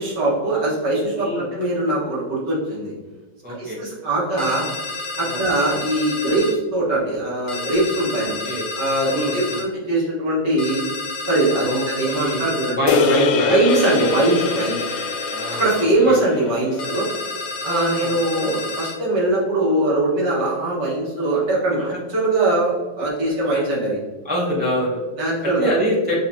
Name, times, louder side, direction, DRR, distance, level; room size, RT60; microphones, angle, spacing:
voice 1, 0.0-2.9 3.5-4.6 5.2-10.8 11.3-13.1 13.5-14.9 15.5-17.1 17.6-24.0 25.2-25.7, right 2 dB, 70° right, -6 dB, 2.2 m, -21 dB
voice 2, 1.1-1.5 3.4-3.8 5.2-5.4 8.4-8.6 9.1-9.6 11.6-12.5 12.8-13.8 15.3-16.2 17.6-18.2 23.5-23.6 24.2-25.0 25.4-26.3, equal, 10° right, -4 dB, 0.4 m, -24 dB
sound 1, 4.4-6.6 7.5-9.7 10.6-12.8 13.7-15.9 16.8-19.0, left 3 dB, 65° left, 1.5 m, -30 dB
sound 2, 12.9-17.3, left 5 dB, 80° left, 1.2 m, -25 dB
5.7 x 2.9 x 2.8 m, 1.3 s
omnidirectional pair, 2.0 m